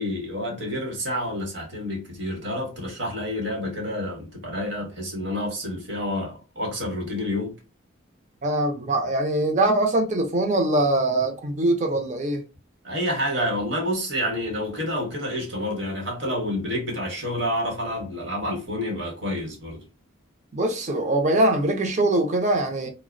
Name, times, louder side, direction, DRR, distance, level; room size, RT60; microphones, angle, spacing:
voice 1, 0.0-7.5 12.8-19.9, left 1 dB, 60° right, 1.0 m, -29 dB
voice 2, 8.4-12.4 20.5-22.9, right 1 dB, 35° right, 0.5 m, -22 dB
2.4 x 2.0 x 2.5 m
head